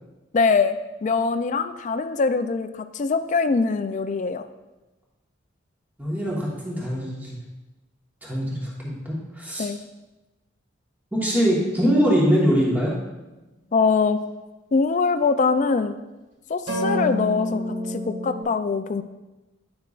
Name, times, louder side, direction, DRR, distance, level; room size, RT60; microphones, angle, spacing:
voice 1, 0.3-0.8 1.0-4.5 9.6-9.8 13.7-14.2 14.7-16.0 16.5-17.6 17.9-19.0, left 4 dB, 40° left, 10 dB, 0.3 m, -22 dB
voice 2, 6.0-7.4 8.2-9.7 11.1-12.9, equal, 10° right, -5 dB, 1.3 m, -23 dB
sound 1, 16.7-18.4, equal, 70° right, 1.9 m, -27 dB
9.5 x 5.8 x 2.4 m, 1.1 s
head